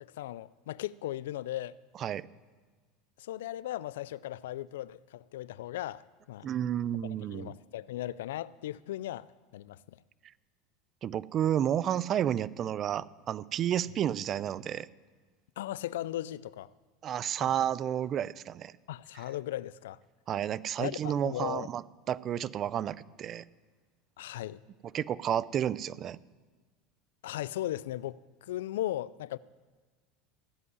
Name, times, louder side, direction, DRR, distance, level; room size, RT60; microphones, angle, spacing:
voice 1, 0.0-1.8 3.2-6.5 7.3-9.3 9.5-9.8 15.6-16.7 17.4-17.5 18.9-20.0 20.8-21.7 24.2-24.6 27.2-29.4, left 13 dB, 85° left, 0.3 m, -37 dB
voice 2, 6.4-7.5 11.0-14.9 17.0-18.7 20.3-21.8 22.1-23.4 24.9-26.2, right 10 dB, 40° right, 0.4 m, -31 dB
15.0 x 5.4 x 9.5 m
supercardioid pair, 100°, 0 cm